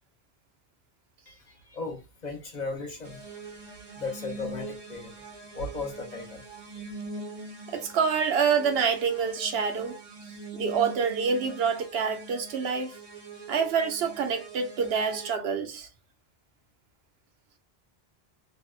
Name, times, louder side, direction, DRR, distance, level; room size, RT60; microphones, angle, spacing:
voice 1, 1.3-3.7 3.9-6.9, left 3 dB, 45° left, 0.7 m, -37 dB
sound 1, 3.0-15.3, right 2 dB, 40° right, 0.6 m, -43 dB
voice 2, 7.7-10.0 10.5-12.9 13.5-15.9, right 6 dB, 75° right, 0.8 m, -27 dB
2.7 x 2.1 x 2.2 m
omnidirectional pair, 1.1 m